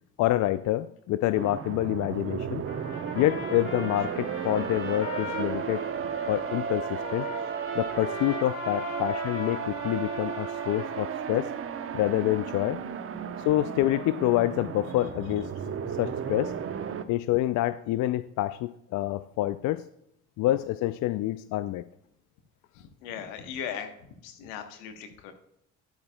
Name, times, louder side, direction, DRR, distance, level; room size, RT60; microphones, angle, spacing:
voice 1, 0.2-2.7 3.1-5.8 6.3-7.3 7.8-11.5 11.9-12.8 13.4-15.5 16.0-16.5 17.1-19.8 20.4-21.8, left 15 dB, 55° left, 13 dB, 0.4 m, -27 dB
sound 1, 1.3-17.0, right 7 dB, 40° right, 0.8 m, -34 dB
Trumpet, 2.7-11.1, left 2 dB, 35° left, 2.5 m, -40 dB
voice 2, 23.0-23.9 24.2-25.3, left 8 dB, 80° left, 7 dB, 1.2 m, -37 dB
10.5 x 8.5 x 2.2 m, 0.74 s
hypercardioid pair, 55°, 35 cm